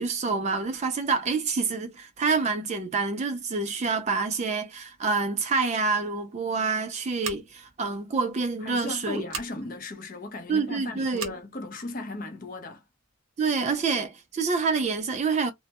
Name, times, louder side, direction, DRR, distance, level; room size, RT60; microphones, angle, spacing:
voice 1, 0.0-9.3 10.5-11.3 13.4-15.5, right 4 dB, 30° right, 0.3 m, -27 dB
Scissors, 7.2-7.7 9.3-9.5 11.1-11.4, right 6 dB, 80° right, 0.8 m, -36 dB
voice 2, 8.6-12.8, left 2 dB, 40° left, 0.5 m, -37 dB
2.1 x 2.1 x 2.8 m
head